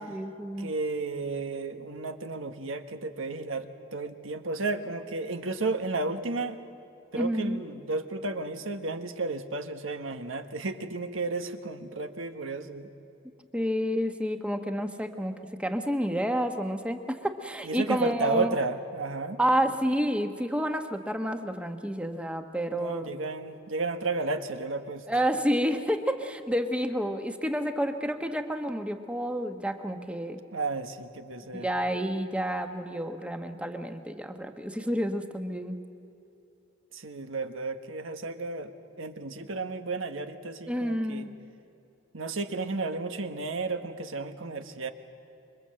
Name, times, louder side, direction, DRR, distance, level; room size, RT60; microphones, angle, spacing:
voice 1, 0.0-0.7 7.1-7.6 13.5-18.6 19.4-23.1 25.1-30.4 31.5-35.8 40.7-41.3, equal, 5° right, 6 dB, 1.2 m, -29 dB
voice 2, 0.6-6.6 7.1-12.9 17.6-19.4 22.7-25.0 30.5-31.7 36.9-38.7 39.0-41.3 42.1-44.9, right 3 dB, 85° right, 8 dB, 1.5 m, -33 dB
27.0 x 23.5 x 7.7 m, 2.8 s
head